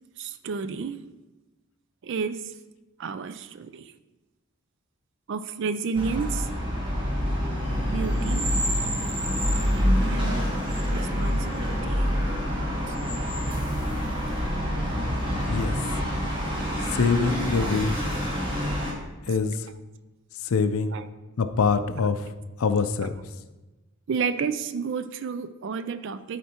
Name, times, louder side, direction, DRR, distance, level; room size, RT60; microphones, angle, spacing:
voice 1, 0.2-1.0 2.0-2.5 3.0-3.9 5.3-6.5 7.9-8.5 10.0-10.5 10.9-12.1 12.9-13.0 19.3-19.4 20.9-21.1 23.0-23.1 24.1-26.4, right 5 dB, 55° right, 12 dB, 0.3 m, -31 dB
sound 1, 5.9-18.9, equal, 20° right, 1.2 m, -26 dB
voice 2, 16.9-18.0 19.3-19.5 20.5-21.0 21.4-22.2 22.6-23.1, left 5 dB, 70° left, 10 dB, 0.4 m, -24 dB
11.5 x 4.3 x 2.9 m, 1.1 s
head